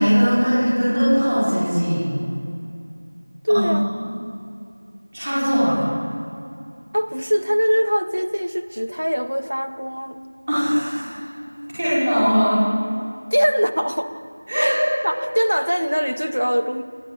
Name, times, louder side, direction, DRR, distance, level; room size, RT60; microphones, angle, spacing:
voice 1, 0.0-2.1 3.5-3.7 5.1-5.9 10.5-11.1 11.8-12.6 14.5-14.8, equal, 15° right, -12 dB, 5.2 m, -19 dB
voice 2, 3.4-3.9 6.9-10.2 13.3-14.2 14.6-14.7 15.0-16.8, equal, 80° right, 7 dB, 1.8 m, -22 dB
18.0 x 11.5 x 7.0 m, 2.5 s
figure-of-eight pair, 175°, 0 cm